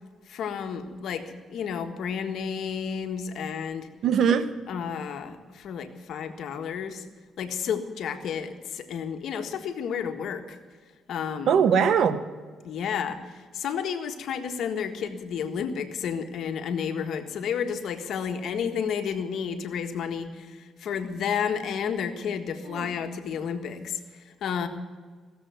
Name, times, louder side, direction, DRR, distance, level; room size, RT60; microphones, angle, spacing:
voice 1, 0.3-3.9 4.7-7.0 7.4-10.6 11.1-11.6 12.6-24.7, left 7 dB, 70° left, 7 dB, 1.6 m, -31 dB
voice 2, 4.0-4.5 11.5-12.3 22.7-22.9, right 7 dB, 65° right, 12 dB, 1.1 m, -21 dB
16.5 x 7.7 x 9.3 m, 1.5 s
cardioid pair, 90°, 0 cm